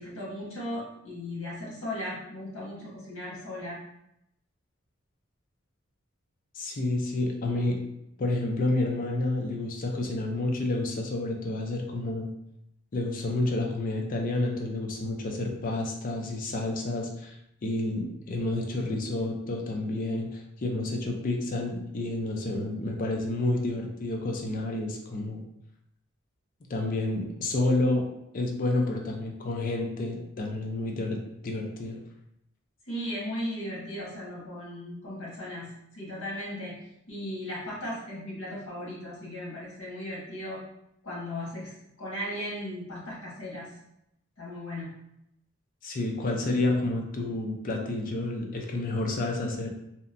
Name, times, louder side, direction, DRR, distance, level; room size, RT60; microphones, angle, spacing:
voice 1, 0.0-3.8 32.9-36.8 37.1-40.6 41.0-43.7 44.4-44.9, left 1 dB, 85° left, -5 dB, 1.1 m, -37 dB
voice 2, 6.6-7.8 8.2-12.3 12.9-17.4 17.6-25.4 26.7-28.0 28.3-32.0 45.8-49.7, left 2 dB, 45° left, 1 dB, 0.4 m, -29 dB
2.8 x 2.1 x 2.5 m, 0.80 s
head